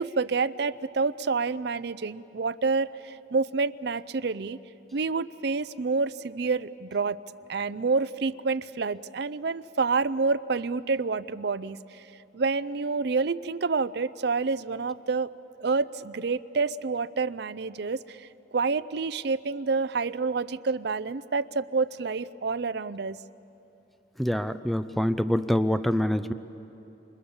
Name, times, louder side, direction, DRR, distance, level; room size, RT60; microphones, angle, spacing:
voice 1, 0.0-4.6 4.9-7.2 7.5-12.0 12.3-15.3 15.6-23.2, right 4 dB, 55° right, 15 dB, 0.5 m, -28 dB
voice 2, 24.2-26.3, equal, ahead, 11 dB, 0.5 m, -25 dB
28.0 x 25.0 x 7.2 m, 2.9 s
head